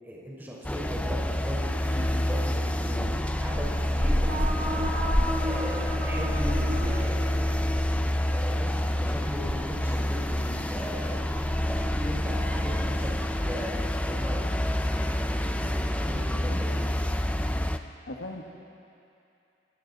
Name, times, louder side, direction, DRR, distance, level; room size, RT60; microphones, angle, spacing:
voice 1, 0.0-4.9 5.4-7.8 8.3-11.2 11.7-14.4 14.9-16.9, equal, 10° right, -4 dB, 4.7 m, -38 dB
sound 1, 0.6-17.8, left 1 dB, 10° left, 0.6 m, -27 dB
sound 2, 3.9-7.8, equal, 85° right, 5.8 m, -35 dB
voice 2, 18.1-18.4, left 2 dB, 85° left, -1 dB, 1.8 m, -39 dB
29.0 x 25.5 x 4.2 m, 2.7 s
head